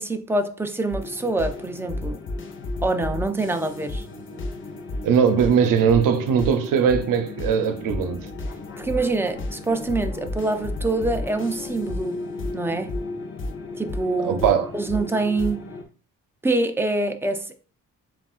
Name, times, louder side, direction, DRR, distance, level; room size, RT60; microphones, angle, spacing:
voice 1, 0.0-2.2 2.8-4.1 8.8-12.2 12.5-12.9 13.8-14.4 14.7-15.7 16.4-17.5, right 2 dB, 5° right, 0.4 m, -25 dB
sound 1, 0.9-15.8, left 2 dB, 40° left, 0.7 m, -33 dB
voice 2, 5.0-8.3 14.2-14.7, right 7 dB, 80° right, 0.7 m, -20 dB
7.2 x 2.4 x 2.4 m
cardioid pair, 120°, 32 cm